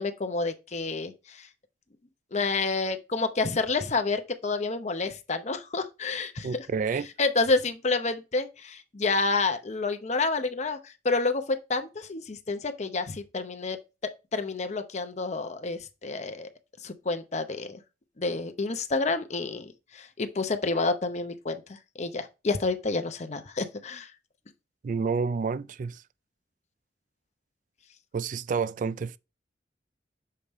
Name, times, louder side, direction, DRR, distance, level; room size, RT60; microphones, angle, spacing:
voice 1, 0.0-1.5 2.3-6.7 7.2-13.8 14.3-16.5 16.8-17.8 18.2-24.1, left 3 dB, 40° left, 0.7 m, -29 dB
voice 2, 6.4-7.1 24.8-26.0 28.1-29.2, right 5 dB, 45° right, 0.3 m, -29 dB
6.7 x 5.2 x 3.0 m
head